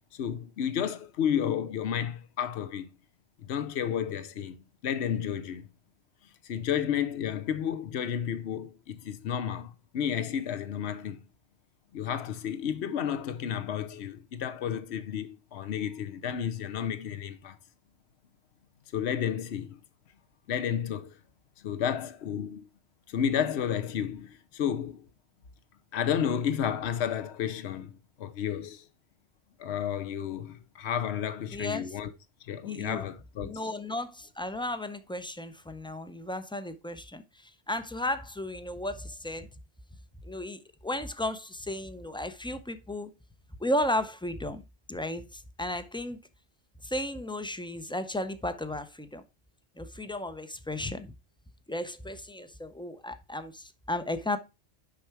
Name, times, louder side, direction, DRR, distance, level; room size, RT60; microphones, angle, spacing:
voice 1, 0.1-2.9 3.4-4.6 4.8-5.6 6.4-11.2 11.9-17.6 18.9-19.8 20.5-21.2 21.6-22.7 23.1-25.0 25.9-28.8 29.6-32.1 32.5-33.5, left 9 dB, 80° left, 1.0 m, -31 dB
voice 2, 31.5-31.9 32.6-33.0 33.4-39.5 40.2-43.1 43.6-46.2 46.8-49.2 49.8-51.1 51.7-54.4, left 1 dB, 10° left, 0.3 m, -34 dB
7.0 x 5.6 x 4.6 m
omnidirectional pair, 1.1 m